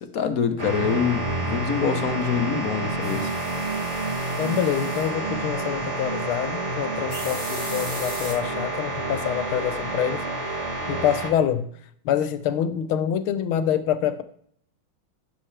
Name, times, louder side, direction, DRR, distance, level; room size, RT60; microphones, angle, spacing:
voice 1, 0.0-3.3, left 7 dB, 55° left, 1.0 m, -25 dB
sound 1, 0.6-11.3, right 2 dB, 70° right, 4.4 m, -29 dB
sound 2, 3.0-5.1 7.1-8.3, equal, 25° right, 5.3 m, -38 dB
voice 2, 4.4-10.2 10.9-11.7 12.0-14.2, left 9 dB, 80° left, 1.6 m, -26 dB
15.5 x 6.5 x 3.3 m
omnidirectional pair, 2.3 m